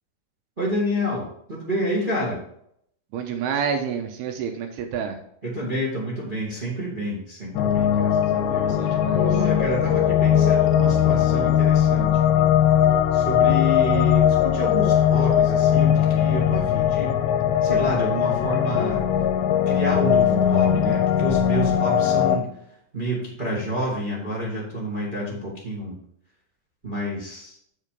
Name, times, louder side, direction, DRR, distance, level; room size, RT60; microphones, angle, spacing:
voice 1, 0.6-2.4 5.4-12.2 13.1-17.2 17.6-19.0 19.6-22.5 22.9-26.0 26.8-27.6, equal, 30° right, -5 dB, 1.0 m, -29 dB
voice 2, 3.1-5.2 8.7-9.3, right 7 dB, 80° right, 5 dB, 2.7 m, -28 dB
sound 1, 7.6-22.4, left 9 dB, 85° left, 3.0 m, -20 dB
6.9 x 6.7 x 5.0 m, 0.70 s
omnidirectional pair, 5.0 m